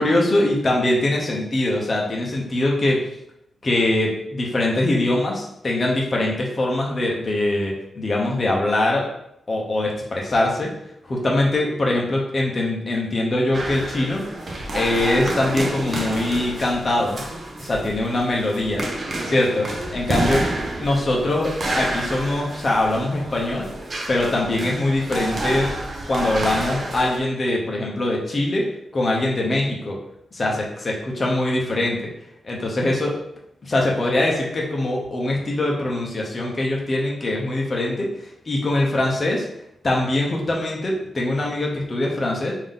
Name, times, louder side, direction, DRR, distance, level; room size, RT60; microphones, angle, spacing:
voice 1, 0.0-3.0 3.6-9.1 9.5-10.7 11.0-14.2 14.7-17.2 17.7-18.8 19.2-20.5 20.8-23.7 24.1-25.7 26.1-30.0 30.3-32.1 32.4-33.2 33.6-39.5 39.8-42.5, left 1 dB, 30° left, -2 dB, 0.7 m, -22 dB
sound 1, 13.5-27.2, right 1 dB, 40° right, 0.6 m, -29 dB
3.6 x 2.7 x 3.6 m, 0.78 s
wide cardioid pair, 140°, 0 cm